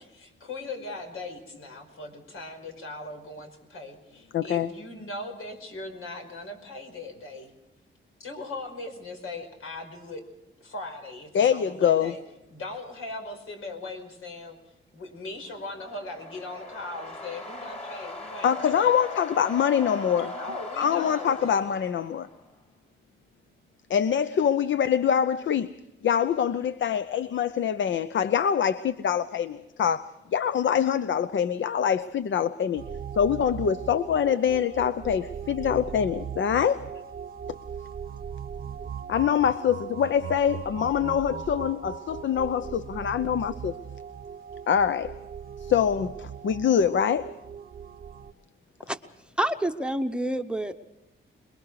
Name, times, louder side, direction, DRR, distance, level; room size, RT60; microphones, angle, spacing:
voice 1, 0.1-7.5 8.2-10.2 10.6-12.2 12.5-14.6 14.9-18.9 20.3-21.6, left 2 dB, 85° left, 5 dB, 5.2 m, -39 dB
voice 2, 4.3-4.7 11.3-12.2 18.4-20.3 20.8-22.3 23.9-25.7 26.0-32.8 33.2-36.8 37.5-37.6 39.1-43.8 44.7-45.1 45.6-47.4, left 8 dB, 65° left, 13 dB, 0.7 m, -24 dB
sound 1, 15.4-22.5, left 1 dB, 30° left, 3.6 m, -40 dB
sound 2, 32.8-48.3, right 7 dB, 45° right, 0.8 m, -39 dB
voice 3, 49.4-50.7, right 1 dB, 5° right, 9 dB, 0.8 m, -27 dB
28.0 x 21.5 x 4.8 m, 0.95 s
wide cardioid pair, 150°, 21 cm